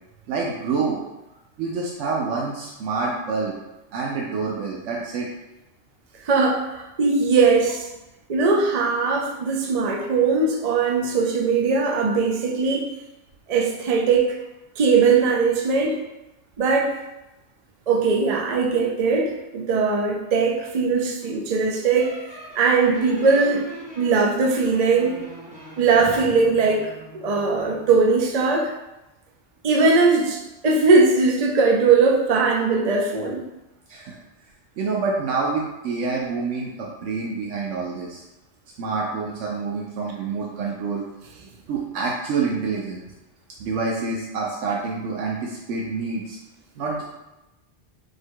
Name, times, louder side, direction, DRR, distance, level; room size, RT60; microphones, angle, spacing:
voice 1, 0.3-1.0 1.6-3.5 3.9-5.3 33.9-34.2 34.8-38.2 38.8-41.0 41.7-43.0 43.6-46.4 46.8-47.0, right 4 dB, 90° right, -3 dB, 1.0 m, -27 dB
voice 2, 6.2-7.9 8.3-12.9 13.5-14.4 14.8-16.0 16.6-17.0 17.9-22.1 22.6-23.7 24.0-25.2 25.8-28.7 29.6-33.4, right 4 dB, 55° right, 0 dB, 0.4 m, -20 dB
sound 1, 22.0-28.0, equal, 5° right, 0.9 m, -42 dB
4.7 x 2.2 x 4.5 m, 0.98 s
omnidirectional pair, 1.2 m